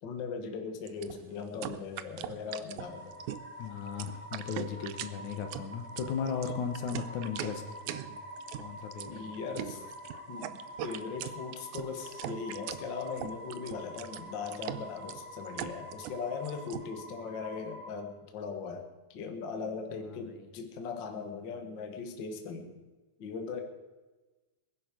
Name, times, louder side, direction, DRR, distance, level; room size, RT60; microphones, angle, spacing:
voice 1, 0.0-3.2 9.1-9.8 10.3-22.7 23.2-23.6, left 5 dB, 45° left, 5 dB, 1.6 m, -39 dB
sound 1, 0.9-16.9, right 13 dB, 75° right, 1.8 m, -41 dB
sound 2, 2.8-17.9, equal, 20° right, 0.8 m, -47 dB
voice 2, 3.6-8.2 8.5-9.2 9.7-9.8 19.9-20.5, left 6 dB, 65° left, 6 dB, 2.3 m, -37 dB
20.0 x 11.0 x 5.0 m, 1.2 s
omnidirectional pair, 4.0 m